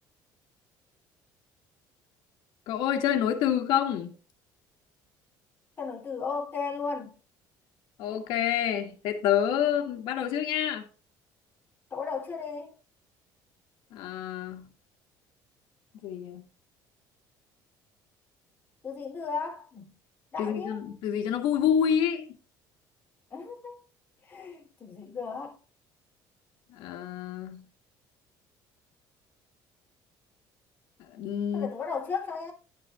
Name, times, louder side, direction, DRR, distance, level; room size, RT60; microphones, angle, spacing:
voice 1, 2.7-4.1 8.0-10.8 13.9-14.6 16.0-16.4 20.4-22.3 26.7-27.6 31.1-31.7, left 9 dB, 75° left, 2.0 m, -27 dB
voice 2, 5.8-7.1 11.9-12.7 18.8-19.9 20.3-20.9 23.3-23.8 24.3-25.6 31.5-32.5, left 5 dB, 25° left, 2.9 m, -35 dB
12.0 x 8.6 x 2.4 m
cardioid pair, 145°, 8 cm